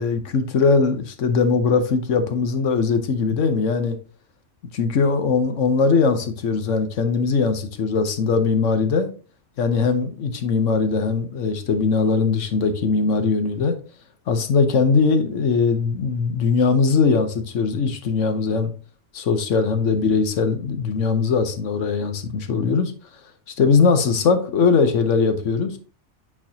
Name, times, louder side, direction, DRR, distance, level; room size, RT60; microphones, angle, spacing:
voice 1, 0.0-4.0 4.7-9.1 9.6-13.8 14.3-18.7 19.1-22.9 23.6-25.8, left 5 dB, 80° left, 1.2 m, -20 dB
8.5 x 4.3 x 2.8 m
omnidirectional pair, 1.3 m